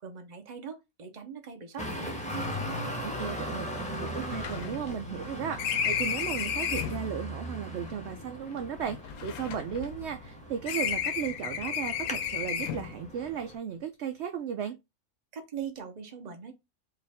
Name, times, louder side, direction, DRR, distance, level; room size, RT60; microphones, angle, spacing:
voice 1, 0.0-2.2 15.3-16.5, right 7 dB, 35° right, 0.9 m, -41 dB
Traffic noise roadway noise, 1.8-13.5, equal, 5° left, 0.7 m, -39 dB
sound 1, 3.0-3.1 3.3-3.4 3.8-7.1 7.9-10.3 10.7-13.0, left 8 dB, 80° left, 1.1 m, -33 dB
voice 2, 3.0-14.8, right 8 dB, 65° right, 0.7 m, -35 dB
4.8 x 2.5 x 3.5 m
omnidirectional pair, 1.5 m